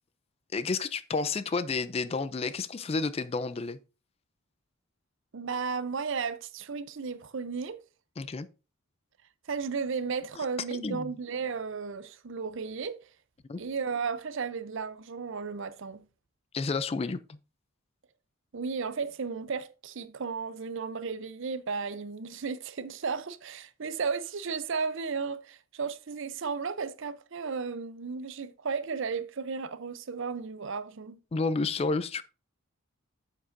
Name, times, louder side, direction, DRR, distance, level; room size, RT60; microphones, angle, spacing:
voice 1, 0.5-3.8 8.2-8.5 10.4-10.5 10.7-11.1 13.5-13.6 16.5-17.4 31.3-32.2, left 4 dB, 25° left, 0.3 m, -31 dB
voice 2, 5.3-7.8 9.5-13.0 13.6-16.0 18.5-31.2, right 5 dB, 55° right, 0.5 m, -34 dB
9.4 x 7.3 x 2.5 m
head